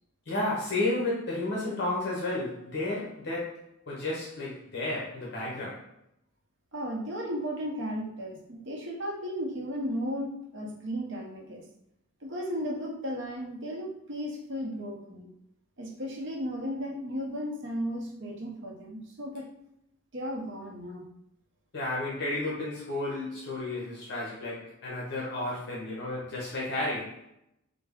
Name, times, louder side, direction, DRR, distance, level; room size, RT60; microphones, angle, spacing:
voice 1, 0.3-3.6 3.9-5.8 21.7-27.2, left 2 dB, 50° left, -5 dB, 0.7 m, -32 dB
voice 2, 6.7-11.6 12.2-15.3 15.8-19.5 20.1-21.1, equal, 55° right, -1 dB, 0.7 m, -35 dB
3.3 x 2.1 x 3.5 m, 0.79 s
head